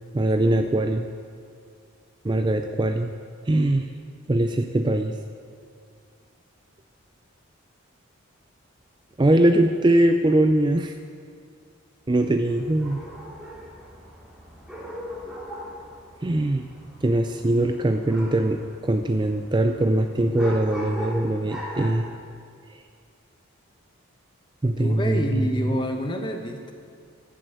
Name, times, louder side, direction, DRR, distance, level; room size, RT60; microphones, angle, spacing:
voice 1, 0.1-1.1 2.2-3.1 3.5-3.9 4.3-5.2 9.2-10.9 12.1-13.0 16.2-16.6 17.0-22.1 24.6-25.5, right 1 dB, 20° right, 6 dB, 0.4 m, -21 dB
sound 1, 12.4-22.1, equal, 5° right, 2.6 m, -39 dB
voice 2, 24.8-26.7, equal, 20° left, 4 dB, 1.0 m, -28 dB
13.0 x 7.6 x 7.7 m, 2.3 s
head